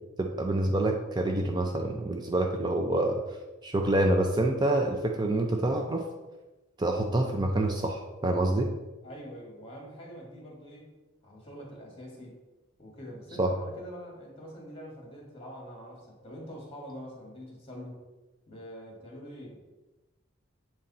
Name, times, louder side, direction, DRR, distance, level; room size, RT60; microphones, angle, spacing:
voice 1, 0.2-3.2 3.6-6.1 6.8-8.7 13.4-13.5, right 1 dB, 20° right, 2 dB, 0.5 m, -27 dB
voice 2, 9.0-10.9 11.2-12.4 12.8-18.0 18.5-19.6, equal, 30° left, -1 dB, 2.0 m, -45 dB
7.6 x 3.9 x 4.2 m, 1.1 s
head